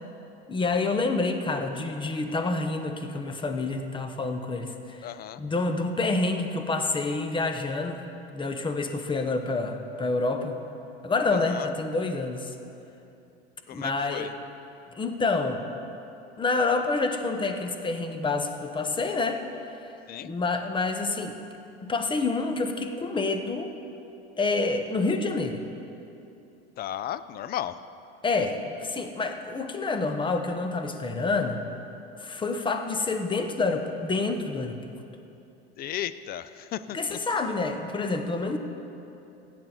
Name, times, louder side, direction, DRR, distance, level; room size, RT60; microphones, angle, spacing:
voice 1, 0.5-5.0 5.4-8.0 8.3-10.6 11.0-12.5 13.7-14.3 15.0-15.6 16.4-19.4 20.2-21.4 21.8-23.7 24.4-25.6 28.2-31.6 32.2-34.8 36.9-38.6, left 3 dB, 15° left, 6 dB, 1.0 m, -28 dB
voice 2, 5.0-5.4 11.3-11.7 13.7-14.3 20.1-20.3 26.8-27.8 35.8-37.2, left 11 dB, 30° left, 15 dB, 0.4 m, -35 dB
16.0 x 9.4 x 3.9 m, 2.8 s
hypercardioid pair, 105°, 30 cm